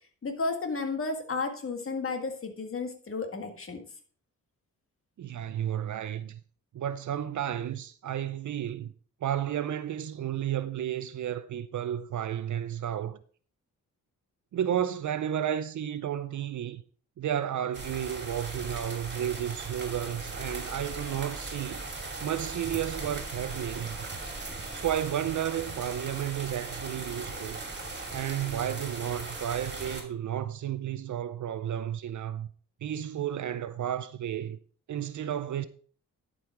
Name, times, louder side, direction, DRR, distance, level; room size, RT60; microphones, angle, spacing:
voice 1, 0.2-3.8, left 3 dB, 40° left, 1.8 m, -33 dB
voice 2, 5.2-6.4 6.7-8.9 9.2-13.2 14.5-16.8 17.2-21.8 22.2-24.0 24.7-27.6 28.1-32.5 32.8-34.6 34.9-35.7, right 10 dB, 65° right, 0.6 m, -32 dB
sound 1, 17.7-30.0, right 3 dB, 35° right, 2.6 m, -38 dB
11.5 x 5.5 x 4.6 m
cardioid pair, 100°, 32 cm